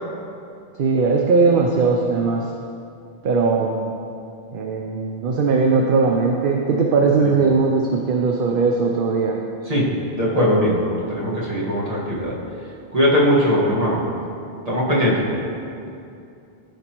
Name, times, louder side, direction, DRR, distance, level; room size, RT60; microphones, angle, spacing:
voice 1, 0.8-2.5 3.2-3.9 4.5-9.4, right 4 dB, 60° right, 1 dB, 0.7 m, -19 dB
voice 2, 9.7-12.3 12.9-14.0 14.7-15.3, equal, 35° right, -6 dB, 1.6 m, -20 dB
13.5 x 5.1 x 3.0 m, 2.6 s
omnidirectional pair, 1.1 m